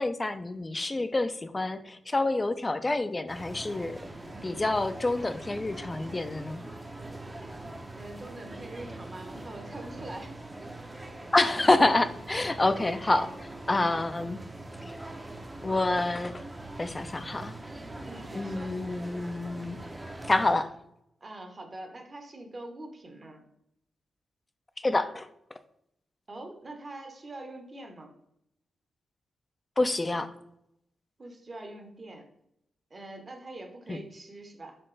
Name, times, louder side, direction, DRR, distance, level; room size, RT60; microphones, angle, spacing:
voice 1, 0.0-4.0 4.4-6.6 11.3-13.3 13.7-14.4 15.6-16.4 16.8-17.5 18.4-19.8 20.3-20.7 24.8-25.3 29.8-30.3 33.9-34.0, left 2 dB, 25° left, 11 dB, 0.4 m, -27 dB
sound 1, 3.3-20.5, right 2 dB, 20° right, 0.6 m, -42 dB
voice 2, 8.0-10.4 13.2-13.4 18.0-18.7 21.2-23.4 26.3-28.1 31.2-32.3 32.9-34.8, right 2 dB, 40° right, 4 dB, 1.0 m, -44 dB
4.3 x 3.6 x 3.3 m, 0.77 s
cardioid pair, 60°, 0 cm